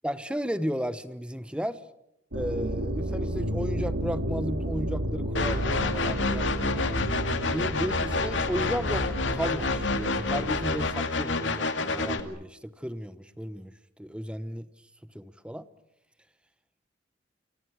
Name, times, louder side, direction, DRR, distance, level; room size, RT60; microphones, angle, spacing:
voice 1, 0.0-1.8 2.3-6.5 7.3-13.7 14.0-14.7 15.1-15.7, equal, 5° right, 13 dB, 1.0 m, -34 dB
sound 1, 2.3-11.0, equal, 85° right, 2.5 m, -32 dB
sound 2, 5.3-12.2, left 3 dB, 75° left, 2.3 m, -28 dB
28.0 x 25.0 x 6.4 m, 0.82 s
head